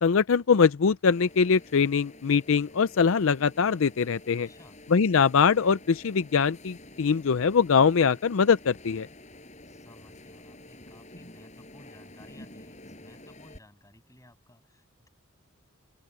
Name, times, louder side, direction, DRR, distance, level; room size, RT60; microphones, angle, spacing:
voice 1, 0.0-4.5 4.9-9.1, left 6 dB, 70° left, 0.5 m, -22 dB
sound 1, 1.1-13.6, left 1 dB, 35° left, 6.0 m, -49 dB
voice 2, 4.5-4.8 9.6-15.1, left 1 dB, 15° left, 7.8 m, -56 dB
open air
head